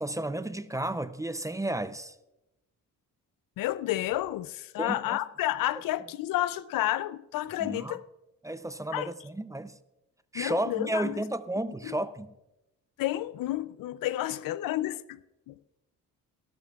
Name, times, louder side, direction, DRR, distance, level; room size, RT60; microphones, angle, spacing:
voice 1, 0.0-2.1 4.8-5.2 7.6-8.0 8.4-9.7 10.3-12.3, right 1 dB, 10° right, 0.5 m, -32 dB
voice 2, 3.6-8.0 8.9-9.1 10.3-11.2 11.8-12.0 13.0-15.2 15.5-15.6, left 14 dB, 75° left, 0.5 m, -31 dB
18.0 x 12.5 x 2.4 m
cardioid pair, 80°, 34 cm